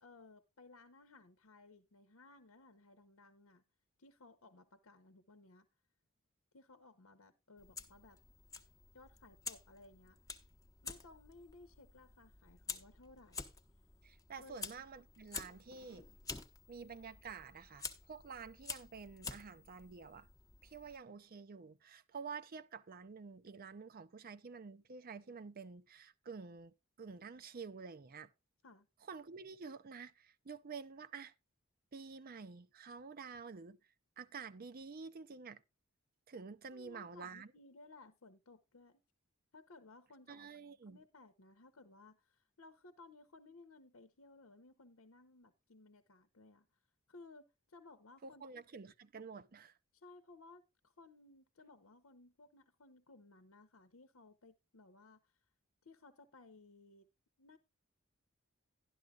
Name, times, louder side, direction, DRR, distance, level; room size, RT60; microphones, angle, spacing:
voice 1, 0.0-3.6 4.0-5.7 6.5-8.2 8.9-10.2 10.8-13.5 14.4-14.7 28.6-28.9 36.7-39.0 39.5-46.7 47.1-48.6 49.9-55.4 55.8-57.1 57.4-57.6, left 3 dB, 80° left, 0.9 m, -60 dB
Fire, 7.6-21.0, left 4 dB, 15° left, 0.9 m, -50 dB
voice 2, 14.0-16.1 16.7-20.3 20.6-28.3 29.1-31.3 31.9-33.8 34.2-35.6 36.3-37.5 40.3-41.0 48.2-49.7, right 5 dB, 45° right, 0.5 m, -49 dB
11.5 x 11.5 x 2.4 m
head